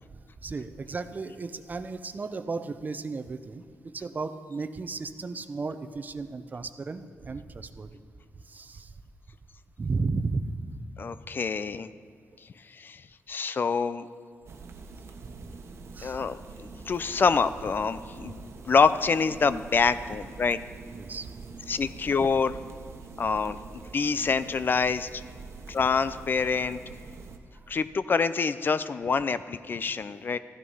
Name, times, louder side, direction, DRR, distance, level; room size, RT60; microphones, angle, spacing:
voice 1, 0.4-8.0 8.4-8.9 9.8-10.8 12.3-12.4 15.2-15.3 15.9-16.2 20.9-21.3 27.5-27.7, right 4 dB, 35° right, 11 dB, 0.7 m, -34 dB
voice 2, 11.0-11.9 12.7-13.0 13.3-14.0 16.0-20.6 21.7-22.6 23.2-25.2 25.7-26.8 27.7-30.4, left 5 dB, 45° left, 14 dB, 0.4 m, -26 dB
sound 1, 14.5-27.4, right 4 dB, 65° right, 1.1 m, -45 dB
14.0 x 11.0 x 5.5 m, 2.2 s
cardioid pair, 110°, 5 cm